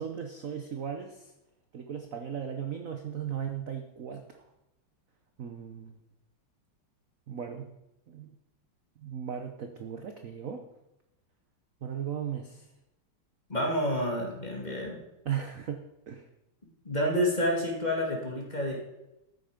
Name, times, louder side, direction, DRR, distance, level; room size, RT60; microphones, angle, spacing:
voice 1, 0.0-1.3 1.7-4.4 5.4-5.9 7.3-7.7 8.1-8.3 9.0-10.7 11.8-12.7 15.2-16.3, right 8 dB, 50° right, 5 dB, 1.1 m, -37 dB
voice 2, 13.5-15.0 16.8-18.8, equal, 20° left, -1 dB, 2.7 m, -29 dB
13.0 x 9.5 x 5.2 m, 0.90 s
omnidirectional pair, 2.3 m